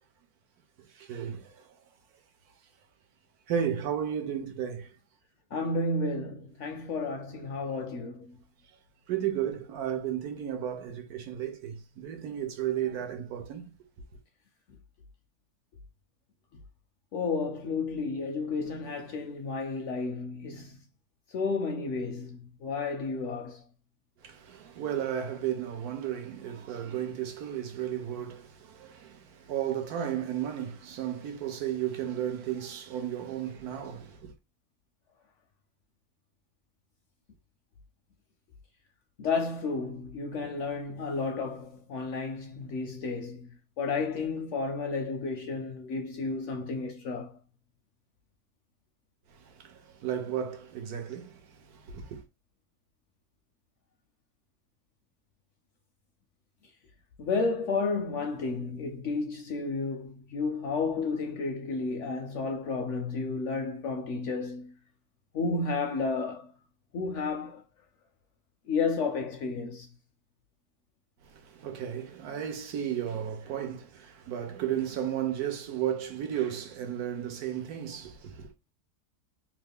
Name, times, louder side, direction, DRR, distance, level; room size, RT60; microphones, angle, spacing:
voice 1, 1.0-1.6 3.5-4.9 9.1-13.7 24.2-34.3 49.5-51.4 51.7-52.2 71.4-78.5, right 10 dB, 75° right, 1.2 m, -34 dB
voice 2, 5.5-8.3 17.1-20.8 21.3-23.6 39.2-43.5 43.8-47.4 57.2-64.7 65.3-66.5 66.9-67.6 68.7-69.9, left 4 dB, 70° left, 0.7 m, -32 dB
3.0 x 2.4 x 3.4 m
omnidirectional pair, 1.7 m